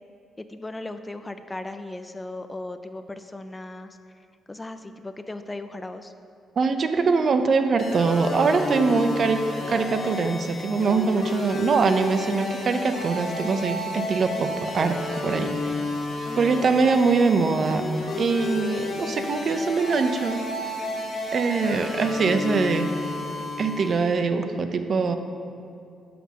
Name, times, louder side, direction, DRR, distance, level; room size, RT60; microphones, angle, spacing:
voice 1, 0.4-6.1 16.2-16.6, left 2 dB, 15° left, 9 dB, 0.3 m, -37 dB
voice 2, 6.6-9.4 9.7-15.8 16.4-17.9 18.2-20.4 21.3-22.9 23.6-25.1, right 4 dB, 50° right, 8 dB, 0.5 m, -23 dB
sound 1, 7.8-24.2, left 2 dB, 55° left, 1.4 m, -31 dB
5.9 x 5.6 x 6.1 m, 2.4 s
cardioid pair, 90°, 0 cm